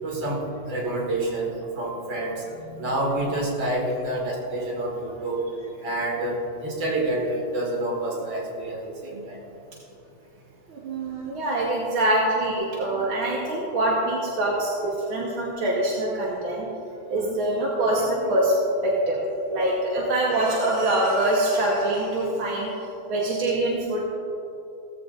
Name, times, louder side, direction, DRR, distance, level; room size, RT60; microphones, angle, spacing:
voice 1, 0.0-5.4 5.8-9.4 20.0-20.1, right 1 dB, 75° right, -2 dB, 3.0 m, -28 dB
voice 2, 10.7-16.7 17.1-18.5 18.8-19.2 19.5-22.8 23.1-24.0, right 1 dB, 90° right, -3 dB, 2.2 m, -24 dB
17.0 x 14.0 x 2.6 m, 2.8 s
omnidirectional pair, 2.2 m